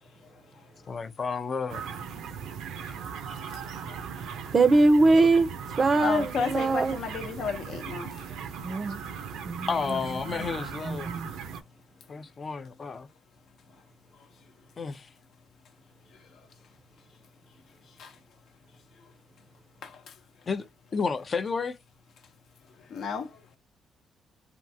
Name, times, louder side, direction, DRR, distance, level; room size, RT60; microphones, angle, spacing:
voice 1, 0.9-1.8 9.7-11.1 12.1-13.1 14.8-15.1 20.5-21.8, left 5 dB, 40° left, 0.5 m, -31 dB
sound 1, 1.7-11.6, right 6 dB, 90° right, 0.6 m, -38 dB
voice 2, 4.5-5.5 5.8-7.0 8.6-9.0 9.4-10.0 10.3-10.4 10.8-11.3, right 3 dB, 35° right, 0.5 m, -22 dB
voice 3, 6.0-8.1 18.0-18.1 19.8-19.9 22.9-23.3, left 5 dB, 70° left, 0.8 m, -31 dB
3.5 x 2.4 x 2.6 m
cardioid pair, 90°, 0 cm